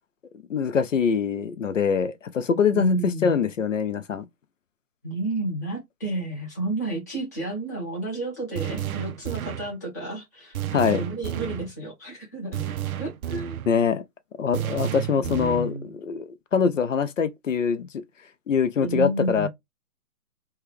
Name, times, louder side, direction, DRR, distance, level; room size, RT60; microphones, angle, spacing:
voice 1, 0.5-4.3 10.7-11.1 13.7-14.0 14.4-18.0 18.5-19.5, left 6 dB, 55° left, 0.5 m, -24 dB
voice 2, 2.7-3.5 5.0-10.6 10.8-12.7 13.0-13.6 15.2-15.9 18.8-19.5, right 2 dB, 10° left, 0.7 m, -31 dB
sound 1, 8.6-9.8 10.5-11.7 12.5-13.7 14.5-15.7, right 11 dB, 65° right, 0.5 m, -31 dB
3.2 x 2.3 x 3.4 m
hypercardioid pair, 155°, 46 cm